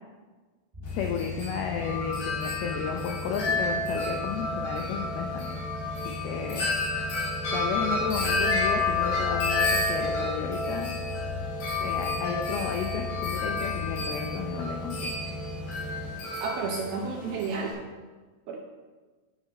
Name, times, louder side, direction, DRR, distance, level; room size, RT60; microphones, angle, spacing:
sound 1, 0.7-16.1, left 3 dB, 30° right, 0.8 m, -37 dB
Wind chime, 0.9-17.7, left 3 dB, 55° left, 4.0 m, -31 dB
voice 1, 1.0-6.7 7.5-10.9 11.8-15.1, left 7 dB, 85° left, 3 dB, 2.2 m, -33 dB
voice 2, 16.4-17.7 18.5-18.6, right 4 dB, 75° right, 0 dB, 2.2 m, -31 dB
9.6 x 8.7 x 4.3 m, 1.3 s
omnidirectional pair, 5.2 m